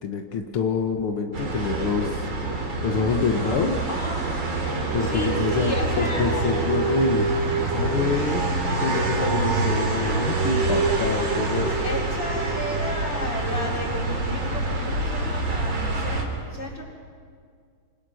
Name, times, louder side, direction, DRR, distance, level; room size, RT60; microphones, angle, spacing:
voice 1, 0.0-2.3 2.8-3.8 4.9-7.3 7.6-8.4 8.8-11.7, left 5 dB, 80° left, 4 dB, 1.2 m, -26 dB
sound 1, 1.3-16.2, right 3 dB, 35° right, 3.6 m, -26 dB
voice 2, 3.9-4.3 5.0-7.1 11.8-16.8, left 1 dB, 15° left, -1 dB, 3.9 m, -33 dB
28.0 x 25.0 x 6.5 m, 2.1 s
omnidirectional pair, 4.5 m